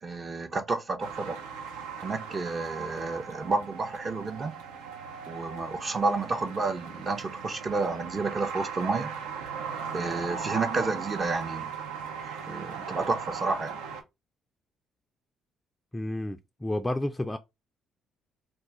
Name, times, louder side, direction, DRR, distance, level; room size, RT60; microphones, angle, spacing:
voice 1, 0.0-1.4 2.0-4.5 5.3-9.1 9.9-11.7 12.5-13.8, right 3 dB, 35° right, 0.6 m, -30 dB
sound 1, 1.0-14.0, right 6 dB, 80° right, 0.5 m, -38 dB
voice 2, 15.9-17.4, left 1 dB, 15° left, 0.3 m, -31 dB
2.4 x 2.3 x 3.9 m
hypercardioid pair, 50°, 0 cm